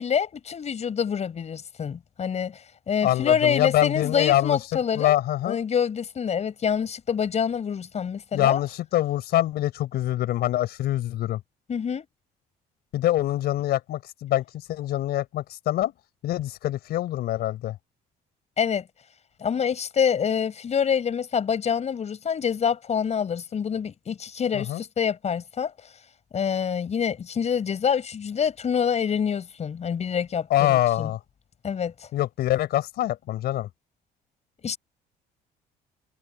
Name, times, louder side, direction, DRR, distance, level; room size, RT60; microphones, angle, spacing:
voice 1, 0.0-5.2 5.4-8.6 11.7-12.1 18.6-18.8 19.4-25.7 26.3-31.1 31.6-32.1 34.6-34.8, left 7 dB, 40° left, 5.5 m, -26 dB
voice 2, 3.0-4.6 4.9-5.6 8.3-11.4 12.9-15.9 16.2-17.8 24.5-24.8 30.5-31.2 32.1-33.7, left 13 dB, 70° left, 4.4 m, -25 dB
cardioid pair, 110°, 17 cm